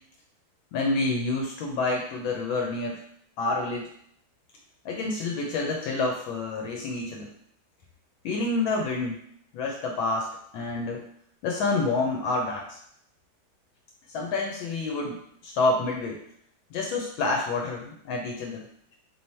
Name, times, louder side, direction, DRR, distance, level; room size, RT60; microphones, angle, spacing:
voice 1, 0.7-3.0 3.4-3.9 4.8-7.3 8.2-9.1 9.5-11.0 11.4-12.8 14.1-16.2 16.7-18.6, left 3 dB, 80° left, 0 dB, 1.4 m, -28 dB
3.2 x 3.1 x 4.2 m, 0.68 s
omnidirectional pair, 2.2 m